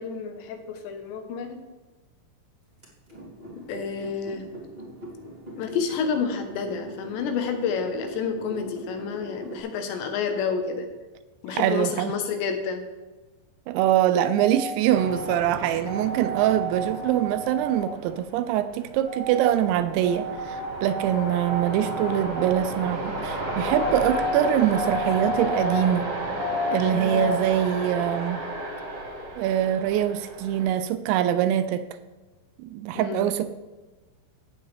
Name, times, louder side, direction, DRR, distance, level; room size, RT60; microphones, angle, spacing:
voice 1, 0.0-1.6 3.6-4.5 5.5-10.9 11.4-12.8 26.9-27.4 32.9-33.3, left 6 dB, 75° left, 5 dB, 3.1 m, -29 dB
sound 1, 2.8-9.6, right 1 dB, 15° right, 1.8 m, -41 dB
voice 2, 11.5-12.1 13.7-26.1 26.7-28.4 29.4-31.9 32.6-33.5, right 11 dB, 85° right, 11 dB, 2.8 m, -24 dB
sound 2, 14.2-15.4 15.8-18.0 19.1-19.6 20.0-22.5 23.6-25.9 26.4-27.4, equal, 45° left, 2.6 m, -32 dB
sound 3, 14.9-30.7, right 2 dB, 60° right, 3.4 m, -33 dB
15.0 x 9.2 x 3.4 m, 1.2 s
omnidirectional pair, 5.4 m